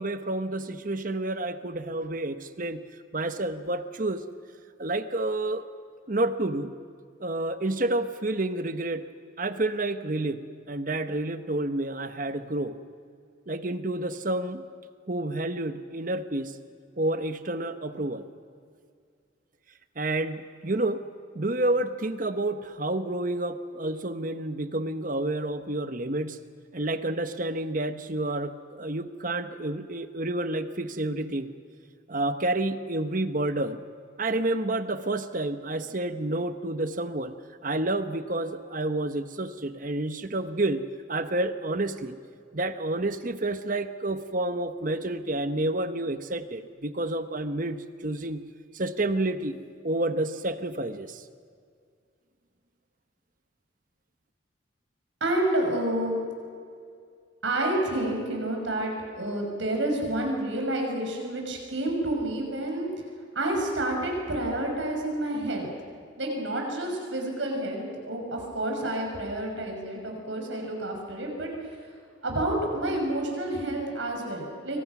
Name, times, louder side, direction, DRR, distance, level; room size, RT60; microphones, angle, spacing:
voice 1, 0.0-2.8 3.1-4.2 4.8-5.7 6.1-6.7 7.2-9.0 9.4-12.8 13.5-14.6 15.1-16.6 17.0-18.2 20.0-21.0 21.3-26.4 26.7-31.5 32.1-33.8 34.2-37.4 37.6-42.2 42.5-48.4 48.7-49.6 49.8-51.2, right 2 dB, 45° right, 10 dB, 1.1 m, -29 dB
voice 2, 55.2-56.2 57.4-62.9 63.3-65.7 66.2-71.5 72.2-74.8, right 1 dB, 70° right, 1 dB, 6.4 m, -29 dB
27.0 x 24.0 x 6.1 m, 2.2 s
head